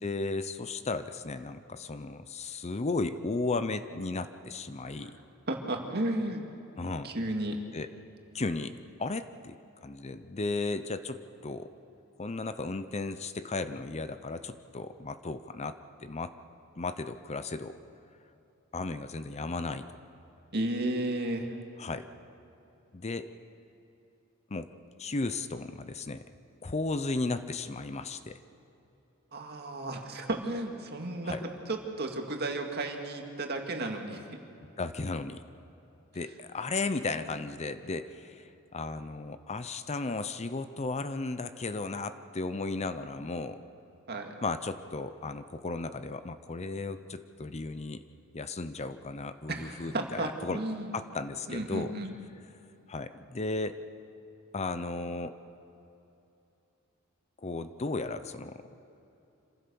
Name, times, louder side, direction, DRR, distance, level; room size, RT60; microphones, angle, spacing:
voice 1, 0.0-5.2 6.8-7.2 7.7-7.9 8.3-9.6 9.8-11.7 12.2-16.3 16.8-17.8 18.7-19.9 21.8-22.1 22.9-23.3 24.5-24.7 25.0-26.2 26.6-28.4 31.2-31.4 34.8-35.4 36.1-43.6 44.4-48.0 48.3-50.6 50.9-51.9 52.9-53.8 54.5-55.4 57.4-58.6, left 3 dB, 30° left, 11 dB, 0.7 m, -35 dB
voice 2, 5.5-6.4 7.0-7.6 20.5-21.5 29.3-31.4 31.7-34.2 44.1-44.3 49.5-50.9 51.5-52.1, right 2 dB, 50° right, 3 dB, 2.1 m, -33 dB
26.5 x 15.5 x 7.0 m, 2.9 s
head